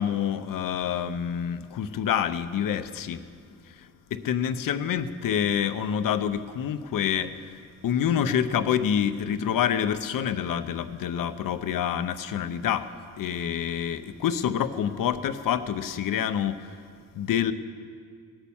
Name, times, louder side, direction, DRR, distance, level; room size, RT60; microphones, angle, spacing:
voice 1, 0.0-3.2 4.1-12.9 13.2-16.8 17.1-17.5, left 9 dB, 70° left, 11 dB, 0.7 m, -27 dB
18.0 x 9.0 x 7.1 m, 2.1 s
wide cardioid pair, 150°, 35 cm